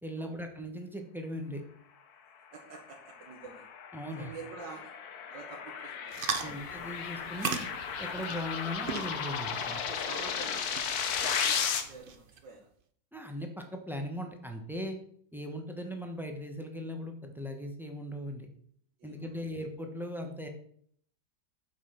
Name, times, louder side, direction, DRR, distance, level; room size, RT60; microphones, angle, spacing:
voice 1, 0.0-1.6 3.9-4.3 6.4-7.7 8.0-9.8 13.1-15.0 15.3-18.5 19.0-20.5, equal, ahead, 4 dB, 0.8 m, -39 dB
voice 2, 2.5-3.7 4.2-4.9 5.3-6.6 9.8-12.7 19.0-19.4, right 4 dB, 80° right, 0 dB, 1.8 m, -48 dB
sound 1, 2.9-11.8, left 7 dB, 60° left, 1.3 m, -35 dB
sound 2, 6.1-12.4, right 6 dB, 60° right, 0.5 m, -40 dB
7.3 x 5.5 x 5.7 m, 0.63 s
omnidirectional pair, 1.9 m